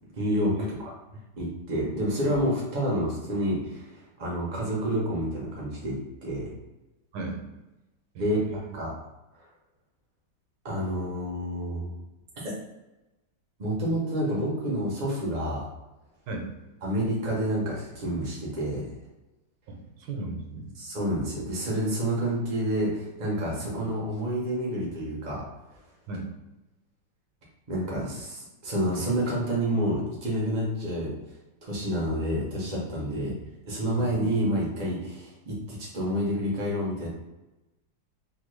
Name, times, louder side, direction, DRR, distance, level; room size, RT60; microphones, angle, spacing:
voice 1, 0.1-0.9 1.4-6.5 8.2-8.4 8.7-8.9 10.6-11.9 12.4-12.5 13.6-15.7 16.8-18.9 20.7-25.4 27.7-31.1 31.6-37.1, equal, 60° right, -4 dB, 0.4 m, -29 dB
voice 2, 8.1-8.7 16.3-16.5 19.7-20.7 26.1-26.3 34.0-34.2, right 2 dB, 80° right, 1 dB, 1.4 m, -36 dB
3.4 x 2.2 x 3.1 m, 1.0 s
omnidirectional pair, 2.0 m